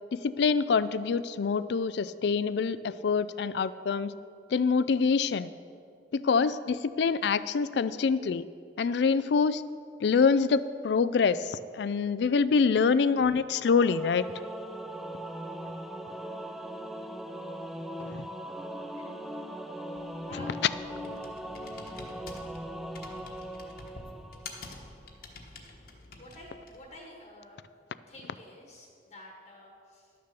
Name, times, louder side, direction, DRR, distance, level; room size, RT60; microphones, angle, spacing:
voice 1, 0.1-4.1 4.5-5.5 6.1-8.5 8.8-9.6 10.0-14.2 18.1-18.3, left 5 dB, 70° left, 15 dB, 0.4 m, -25 dB
Singing / Musical instrument, 13.6-24.9, equal, ahead, 0.3 m, -40 dB
Computer keyboard, 20.0-26.9, left 3 dB, 55° left, 1.2 m, -48 dB
voice 2, 26.2-27.6 28.1-30.1, left 1 dB, 35° left, -1 dB, 1.3 m, -49 dB
12.0 x 6.7 x 6.8 m, 2.4 s
head